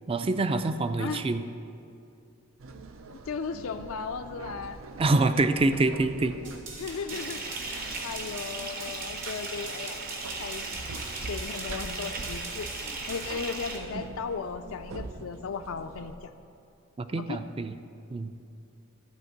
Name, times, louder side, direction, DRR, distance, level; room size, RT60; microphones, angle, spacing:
voice 1, 0.1-1.4 5.0-6.3 17.1-17.7 18.1-18.3, right 2 dB, 25° right, 10 dB, 0.4 m, -25 dB
voice 2, 1.0-1.3 3.1-4.8 6.8-10.0 10.4-10.7 11.3-12.7 13.1-16.3 17.2-17.4, left 5 dB, 85° left, 7 dB, 0.4 m, -36 dB
sound 1, 2.6-16.2, right 3 dB, 80° right, 0.6 m, -44 dB
sound 2, 6.4-13.3, right 3 dB, 60° right, 1.9 m, -43 dB
Bathtub (filling or washing) / Fill (with liquid), 7.1-13.8, right 3 dB, 45° right, 1.1 m, -37 dB
12.5 x 4.4 x 7.8 m, 2.5 s
head